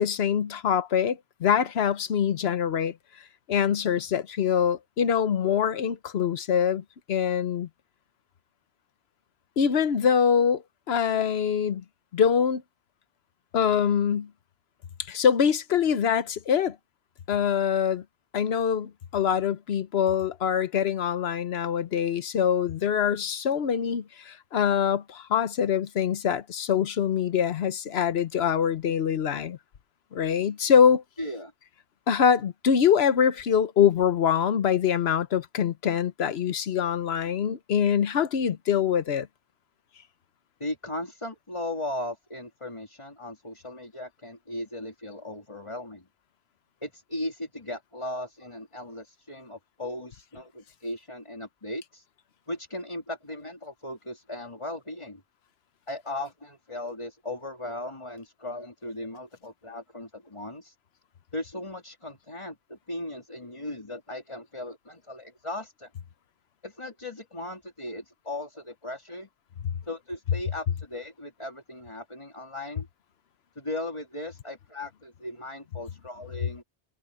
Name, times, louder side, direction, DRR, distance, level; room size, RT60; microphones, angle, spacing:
voice 1, 0.0-2.9 3.5-7.7 9.6-11.8 12.1-12.6 13.5-14.3 15.0-16.8 17.3-18.0 18.3-29.6 30.1-31.0 32.1-39.3, left 8 dB, 70° left, 1.1 m, -24 dB
voice 2, 31.2-31.5 40.6-46.1 46.8-52.1 52.5-55.2 55.9-60.7 61.3-65.9 66.6-69.3 69.9-72.9 73.5-76.6, left 1 dB, 30° left, 3.2 m, -37 dB
omnidirectional pair, 1.1 m